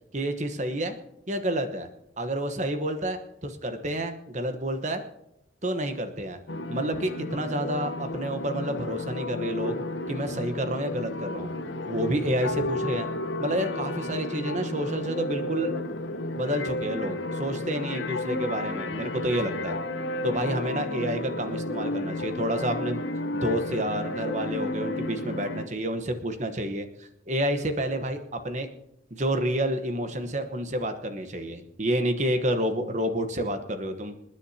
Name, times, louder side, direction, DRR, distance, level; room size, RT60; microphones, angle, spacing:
voice 1, 0.1-1.0 1.3-1.9 2.2-5.0 5.6-6.4 6.7-9.8 10.1-11.5 11.9-13.1 13.4-15.7 16.3-19.8 20.2-23.0 23.3-28.7 29.1-34.1, right 1 dB, 40° right, 7 dB, 1.1 m, -29 dB
sound 1, 6.5-25.7, left 2 dB, 70° left, 1.0 m, -32 dB
27.5 x 9.9 x 2.9 m, 0.83 s
head